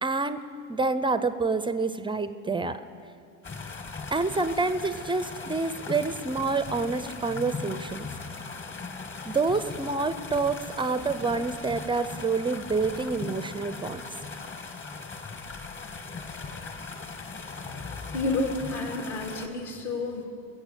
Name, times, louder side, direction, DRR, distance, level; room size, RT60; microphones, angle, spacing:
voice 1, 0.0-2.8 4.1-8.1 9.3-14.0, right 3 dB, 10° right, 12 dB, 0.4 m, -28 dB
sound 1, 3.4-19.5, left 4 dB, 30° left, 1.5 m, -39 dB
voice 2, 17.8-20.2, left 2 dB, 55° left, 2 dB, 2.7 m, -30 dB
21.5 x 8.2 x 6.7 m, 2.4 s
hypercardioid pair, 80°, 41 cm